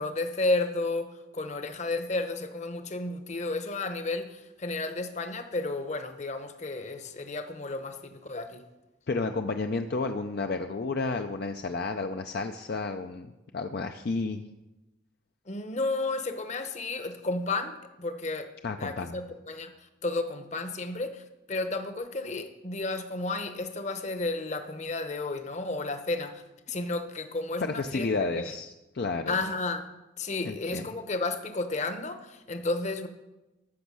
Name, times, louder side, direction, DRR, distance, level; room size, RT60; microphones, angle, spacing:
voice 1, 0.0-8.6 15.5-18.5 18.8-19.7 20.0-21.2 21.5-26.4 26.7-28.1 28.3-28.5 29.3-29.9 30.2-33.1, left 2 dB, 40° left, 8 dB, 0.9 m, -32 dB
voice 2, 9.1-14.4 18.6-19.1 27.6-29.4 30.4-30.8, left 3 dB, 55° left, 6 dB, 0.5 m, -31 dB
13.5 x 6.1 x 6.2 m, 1.0 s
head